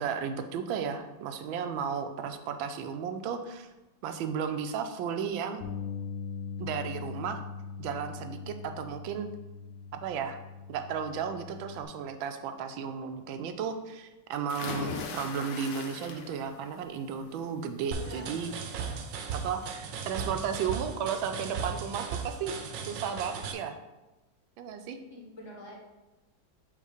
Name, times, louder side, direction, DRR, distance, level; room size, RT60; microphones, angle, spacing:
voice 1, 0.0-3.7 4.0-5.6 6.6-7.4 7.8-9.3 9.9-10.4 10.7-18.9 19.3-23.8 24.6-25.0, right 7 dB, 90° right, 7 dB, 1.4 m, -34 dB
Bass guitar, 5.6-11.9, left 6 dB, 90° left, 1.6 m, -41 dB
sound 1, 14.5-16.6 17.0-17.4 18.8-18.9 19.3-19.4, left 5 dB, 75° left, 1.4 m, -38 dB
voice 2, 17.9-18.4 25.1-25.9, left 1 dB, 45° left, -2 dB, 1.1 m, -46 dB
sound 2, 17.9-23.5, right 5 dB, 75° right, 1.3 m, -37 dB
5.4 x 3.9 x 4.9 m, 1.1 s
omnidirectional pair, 2.1 m